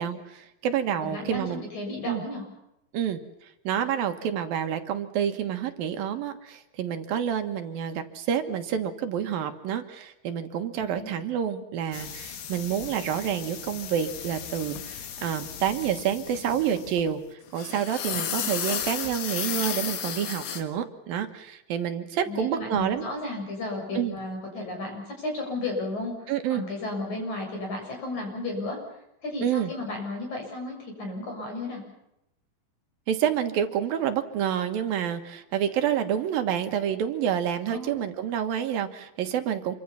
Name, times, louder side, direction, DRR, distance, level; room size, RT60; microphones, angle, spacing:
voice 1, 0.0-1.6 2.1-2.2 2.9-3.2 3.6-23.0 23.9-24.2 26.3-26.6 29.4-29.7 33.1-39.8, right 9 dB, 75° right, 7 dB, 3.2 m, -28 dB
voice 2, 1.0-2.4 10.7-11.2 18.1-18.5 22.3-28.8 29.2-31.8 37.7-38.0, left 2 dB, 50° left, 2 dB, 8.6 m, -34 dB
sound 1, 11.9-17.2 17.5-20.6, left 8 dB, 85° left, 3.8 m, -34 dB
27.0 x 24.5 x 5.8 m, 0.83 s
omnidirectional pair, 4.3 m